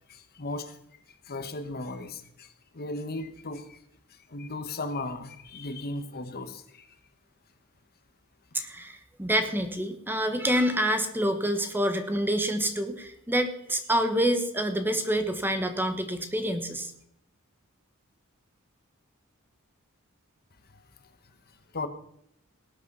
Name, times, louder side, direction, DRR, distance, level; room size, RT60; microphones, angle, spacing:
voice 1, 0.1-0.8 1.1-3.8 4.1-6.9 20.7-21.1 21.7-21.9, left 2 dB, 45° left, 9 dB, 1.1 m, -37 dB
voice 2, 8.5-16.9, right 1 dB, 10° right, 8 dB, 1.2 m, -27 dB
18.5 x 8.6 x 5.4 m, 0.74 s
head